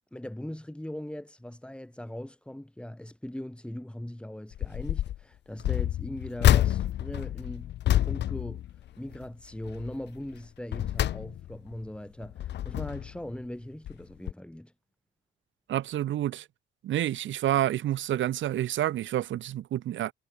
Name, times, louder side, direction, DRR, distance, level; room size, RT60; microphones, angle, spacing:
voice 1, 0.1-7.7 8.0-14.7, left 1 dB, 5° left, 6.8 m, -40 dB
sound 1, 4.5-5.2 5.6-9.3 9.6-10.0 10.5-11.7 12.2-13.2 13.9-14.0 14.3-14.4, left 12 dB, 60° left, 0.6 m, -28 dB
voice 2, 15.7-16.5 16.8-20.1, right 12 dB, 75° right, 1.4 m, -28 dB
cardioid pair, 90°, 20 cm